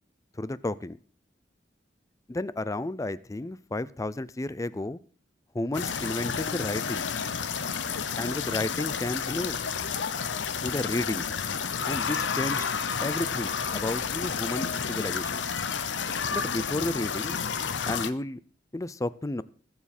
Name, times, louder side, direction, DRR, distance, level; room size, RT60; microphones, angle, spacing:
voice 1, 0.4-1.0 2.3-5.0 5.5-7.0 8.2-9.6 10.6-11.3 11.9-12.7 13.0-15.5 16.3-17.4 17.9-18.4 18.7-19.4, left 2 dB, 20° left, 17 dB, 0.5 m, -32 dB
sound 1, 5.7-18.1, left 6 dB, 90° left, 0.8 m, -31 dB
21.5 x 7.2 x 4.2 m, 0.43 s
head